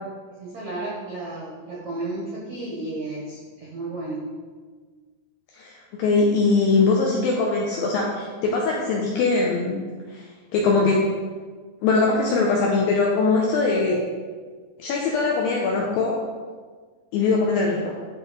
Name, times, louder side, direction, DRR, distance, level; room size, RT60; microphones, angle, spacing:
voice 1, 0.4-4.2, right 2 dB, 80° right, -5 dB, 1.6 m, -33 dB
voice 2, 5.5-9.8 10.1-10.3 10.5-11.1 11.8-14.0 14.8-16.2 17.1-17.9, left 3 dB, 80° left, -2 dB, 2.1 m, -21 dB
11.0 x 3.7 x 4.1 m, 1.5 s
omnidirectional pair, 4.9 m